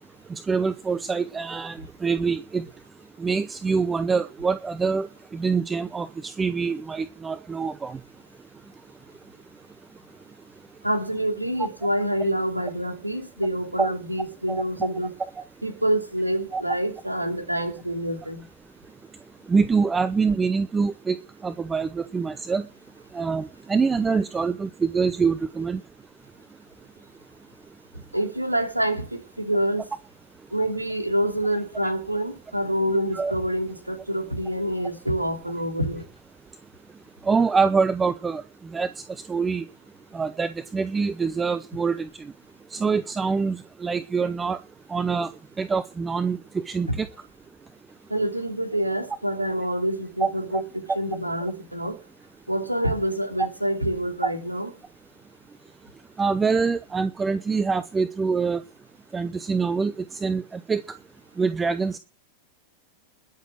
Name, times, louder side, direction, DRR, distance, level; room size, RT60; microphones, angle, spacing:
voice 1, 0.3-2.6 3.2-5.1 5.3-8.0 13.8-13.9 14.5-14.6 16.5-16.6 19.5-21.2 21.4-22.6 23.1-25.8 33.1-33.3 37.3-38.4 38.7-38.9 39.3-39.6 40.1-42.1 42.7-44.6 44.9-45.3 45.6-46.4 46.7-47.1 50.2-50.6 54.2-54.3 56.2-58.6 59.1-59.9 60.2-60.8 61.4-62.0, right 5 dB, 15° right, 0.8 m, -25 dB
voice 2, 10.8-15.1 15.6-18.4 28.1-29.8 30.5-36.0 46.9-47.0 48.1-52.0 52.5-54.7, right 1 dB, 85° right, 2.9 m, -27 dB
21.0 x 7.2 x 6.0 m
figure-of-eight pair, 90°, 0 cm